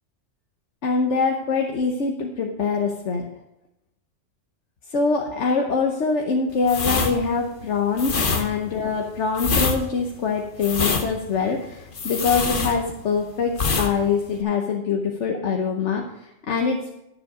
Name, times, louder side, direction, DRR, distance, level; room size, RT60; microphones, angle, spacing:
voice 1, 0.8-3.2 4.9-16.9, left 5 dB, 70° left, 2 dB, 1.3 m, -24 dB
sound 1, 6.6-13.2 13.5-13.9 14.2-14.4, left 4 dB, 45° left, 1.1 m, -25 dB
12.0 x 7.6 x 5.0 m, 0.87 s
omnidirectional pair, 1.3 m